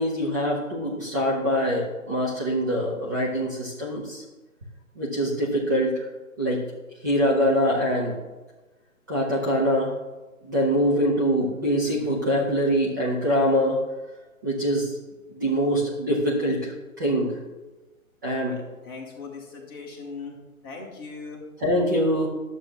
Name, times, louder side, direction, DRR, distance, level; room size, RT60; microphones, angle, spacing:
voice 1, 0.0-4.2 4.9-6.1 6.4-6.6 7.0-8.1 9.1-9.9 10.4-13.8 14.4-15.0 15.3-17.4 18.2-18.6 21.6-22.3, equal, 15° right, -7 dB, 0.7 m, -24 dB
voice 2, 18.4-21.4, left 4 dB, 15° left, -2 dB, 1.2 m, -40 dB
11.5 x 7.5 x 3.0 m, 1.2 s
figure-of-eight pair, 145°, 42 cm